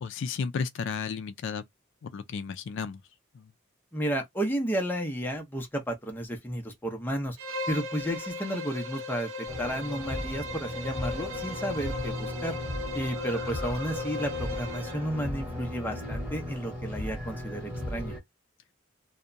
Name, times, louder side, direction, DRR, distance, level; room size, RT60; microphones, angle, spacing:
voice 1, 0.0-1.6 2.0-3.0 3.3-3.5 11.3-11.5, left 5 dB, 65° left, 0.3 m, -33 dB
voice 2, 3.9-7.4 7.7-12.6 12.9-18.1, equal, 10° left, 0.6 m, -32 dB
Bowed string instrument, 7.4-15.1, left 2 dB, 90° right, 0.6 m, -37 dB
sound 1, 9.5-18.2, left 1 dB, 10° right, 1.2 m, -36 dB
2.8 x 2.1 x 2.5 m
head